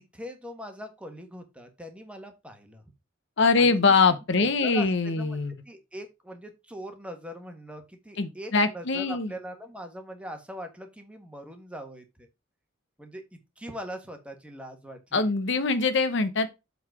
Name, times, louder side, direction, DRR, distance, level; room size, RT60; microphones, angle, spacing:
voice 1, 0.0-2.8 3.6-3.8 4.4-5.4 5.6-12.3 13.0-13.2 13.6-15.3, equal, 5° right, 1.4 m, -41 dB
voice 2, 3.4-5.5 8.2-9.3 15.1-16.5, left 4 dB, 60° left, 0.8 m, -23 dB
7.7 x 4.0 x 4.7 m
head